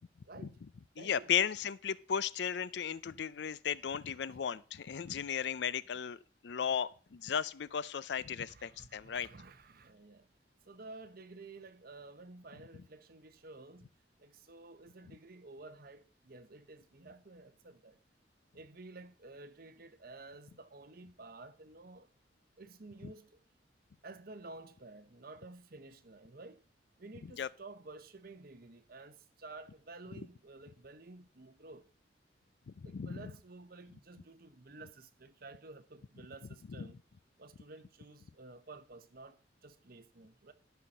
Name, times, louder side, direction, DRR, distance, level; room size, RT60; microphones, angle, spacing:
voice 1, 0.2-0.6 1.0-1.3 4.3-4.4 5.1-5.6 8.5-10.3 10.6-13.9 14.2-18.0 18.5-22.1 22.6-23.4 24.0-26.6 27.0-31.8 32.8-37.0 37.4-40.5, right 3 dB, 55° right, 1.0 m, -52 dB
voice 2, 1.0-9.3 23.0-23.1 27.4-27.5 32.7-33.3 36.8-36.9, left 8 dB, 65° left, 0.4 m, -35 dB
12.5 x 5.8 x 5.4 m
head